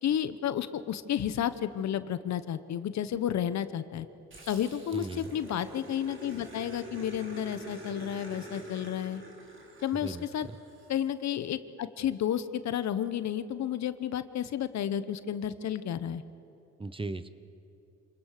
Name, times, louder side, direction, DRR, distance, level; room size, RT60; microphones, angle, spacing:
voice 1, 0.0-4.1 4.5-9.2 9.8-10.5 10.9-16.2, left 10 dB, 65° left, 13 dB, 1.0 m, -31 dB
Growling, 4.3-11.0, right 1 dB, 40° right, 3.7 m, -46 dB
voice 2, 4.9-5.4 10.0-10.6 16.8-17.3, right 3 dB, 15° right, 13 dB, 0.9 m, -38 dB
26.5 x 20.5 x 6.7 m, 2.7 s
cardioid pair, 90°, 30 cm